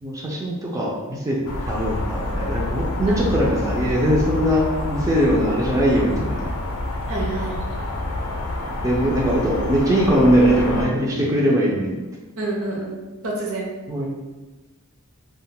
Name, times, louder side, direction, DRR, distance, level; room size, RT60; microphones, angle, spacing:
voice 1, 0.0-1.4 1.6-6.5 8.8-12.0 13.9-14.1, equal, 15° right, -4 dB, 0.3 m, -21 dB
sound 1, 1.4-10.9, left 1 dB, 80° left, 0.4 m, -27 dB
voice 2, 7.1-7.6 12.4-13.7, right 2 dB, 65° right, -1 dB, 0.6 m, -28 dB
2.1 x 2.1 x 3.7 m, 1.2 s
head